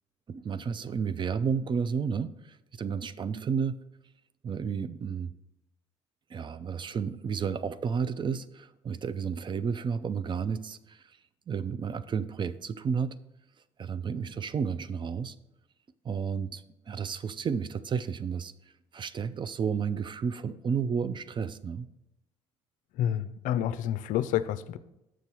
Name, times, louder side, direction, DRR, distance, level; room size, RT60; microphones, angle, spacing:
voice 1, 0.3-3.8 4.4-5.3 6.3-11.0 11.5-13.1 13.8-15.3 16.0-18.5 18.9-21.9, right 6 dB, 35° right, 14 dB, 0.4 m, -32 dB
voice 2, 22.9-24.8, left 11 dB, 60° left, 15 dB, 0.4 m, -29 dB
6.7 x 6.3 x 4.5 m, 0.90 s
hypercardioid pair, 60°, 15 cm